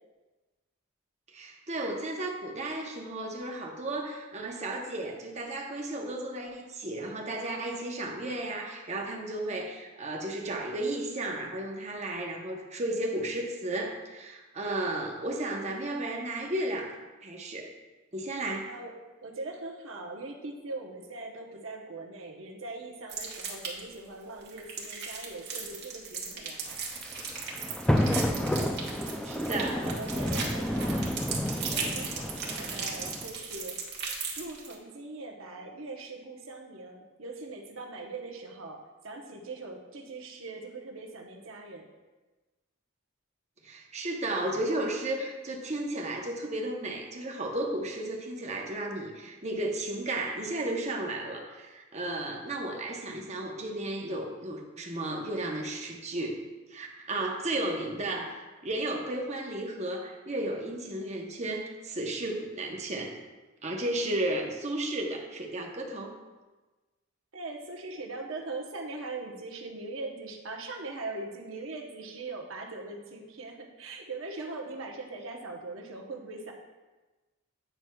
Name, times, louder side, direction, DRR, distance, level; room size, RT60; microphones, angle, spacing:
voice 1, 1.3-17.0 17.2-17.7 18.1-18.7 29.2-29.8 43.6-56.4 56.7-63.2 63.6-66.1, right 1 dB, 35° right, 1 dB, 0.8 m, -34 dB
voice 2, 19.2-26.8 29.7-31.1 31.6-33.8 34.4-41.9 67.3-76.5, right 3 dB, 80° right, 1 dB, 0.9 m, -41 dB
sound 1, 23.1-23.9 24.4-34.7, right 5 dB, 55° right, 1.3 m, -37 dB
sound 2, 26.7-33.3, equal, 5° left, 0.3 m, -30 dB
9.1 x 5.9 x 2.3 m, 1.2 s
head